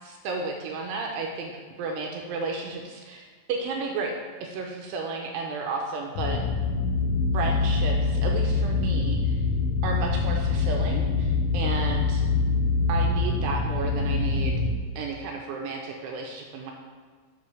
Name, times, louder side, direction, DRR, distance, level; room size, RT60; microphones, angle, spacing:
voice 1, 0.0-4.1 4.4-6.4 7.3-9.3 9.8-12.2 12.9-14.6 15.0-16.7, right 4 dB, 85° right, 1 dB, 2.4 m, -32 dB
sound 1, 6.2-14.7, left 4 dB, 90° left, 3.1 m, -25 dB
7.5 x 6.8 x 3.3 m, 1.5 s
omnidirectional pair, 5.4 m